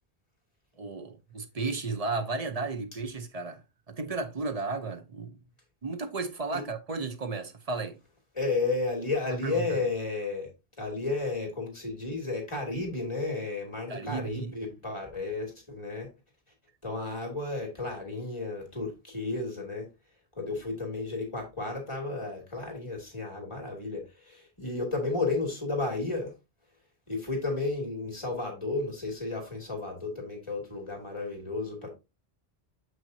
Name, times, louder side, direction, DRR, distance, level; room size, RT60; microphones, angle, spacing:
voice 1, 0.8-5.4 5.8-8.0 9.4-9.8 13.9-14.6, right 3 dB, 40° right, 0.8 m, -34 dB
voice 2, 8.3-10.5 10.8-16.1 16.8-19.9 20.3-26.3 27.1-31.9, left 3 dB, 25° left, 2.7 m, -33 dB
7.2 x 6.0 x 2.8 m
omnidirectional pair, 1.1 m